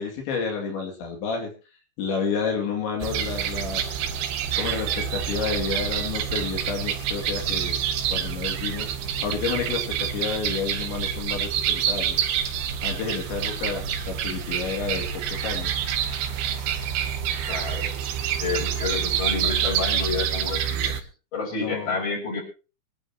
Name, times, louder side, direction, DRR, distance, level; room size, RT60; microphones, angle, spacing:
voice 1, 0.0-1.5 2.0-3.8 4.5-7.8 8.1-8.9 9.2-12.2 12.8-15.8 21.5-22.0, left 5 dB, 80° left, 1 dB, 5.0 m, -30 dB
sound 1, 3.0-21.0, right 9 dB, 90° right, 3.7 m, -27 dB
voice 2, 17.5-18.0 18.4-21.0 21.3-22.4, left 4 dB, 25° left, -1 dB, 7.0 m, -29 dB
25.0 x 11.5 x 2.9 m, 0.32 s
omnidirectional pair, 5.1 m